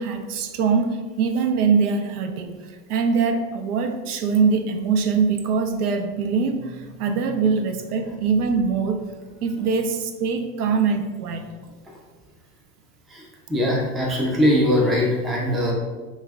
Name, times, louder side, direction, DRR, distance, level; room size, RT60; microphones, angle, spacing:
voice 1, 0.0-2.6 2.9-9.0 9.4-11.4, right 5 dB, 90° right, 7 dB, 0.5 m, -23 dB
voice 2, 13.1-15.7, left 1 dB, ahead, -3 dB, 0.3 m, -21 dB
5.5 x 2.1 x 2.4 m, 1.3 s
supercardioid pair, 105°, 44 cm